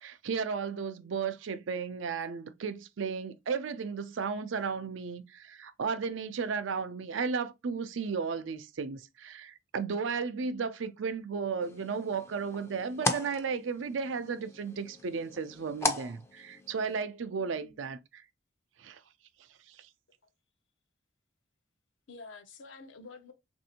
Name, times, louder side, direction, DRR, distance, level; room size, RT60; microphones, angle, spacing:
voice 1, 0.0-18.2 18.8-19.0 19.7-19.9, right 5 dB, 85° right, 0.5 m, -34 dB
sound 1, 11.6-17.0, left 2 dB, 15° left, 0.4 m, -37 dB
voice 2, 17.4-17.8 22.1-23.3, left 3 dB, 85° left, 0.7 m, -49 dB
3.3 x 2.6 x 2.7 m
head